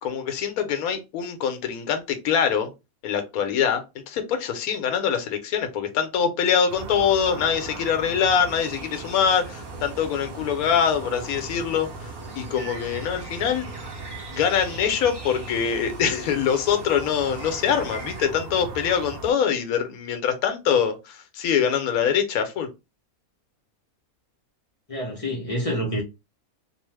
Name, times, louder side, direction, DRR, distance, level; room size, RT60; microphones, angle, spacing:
voice 1, 0.0-2.7 3.0-13.6 14.3-22.7, left 7 dB, 80° left, 1.1 m, -24 dB
sound 1, 6.7-19.3, right 3 dB, 75° right, 1.1 m, -38 dB
sound 2, 8.5-18.3, right 2 dB, 35° right, 0.4 m, -44 dB
voice 2, 24.9-26.0, equal, 40° left, 0.5 m, -27 dB
2.9 x 2.0 x 3.1 m
omnidirectional pair, 1.5 m